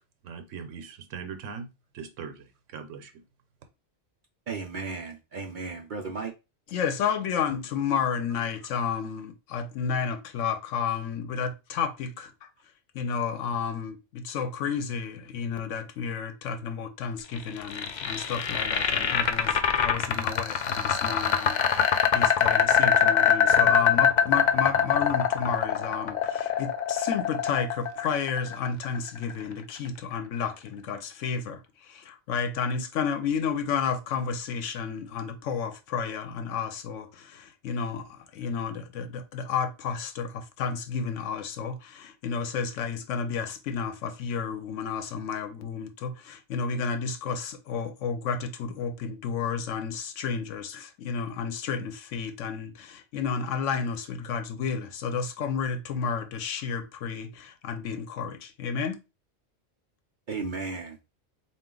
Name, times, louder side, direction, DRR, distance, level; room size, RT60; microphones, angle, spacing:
voice 1, 0.2-1.7 1.9-3.2, right 6 dB, 90° right, 1.0 m, -40 dB
voice 2, 4.5-6.3 60.3-61.0, right 4 dB, 55° right, 0.6 m, -34 dB
voice 3, 6.7-12.5 12.9-59.0, left 6 dB, 80° left, 1.0 m, -31 dB
sound 1, 17.4-29.4, left 7 dB, 60° left, 0.4 m, -23 dB
3.8 x 2.5 x 3.7 m
omnidirectional pair, 1.3 m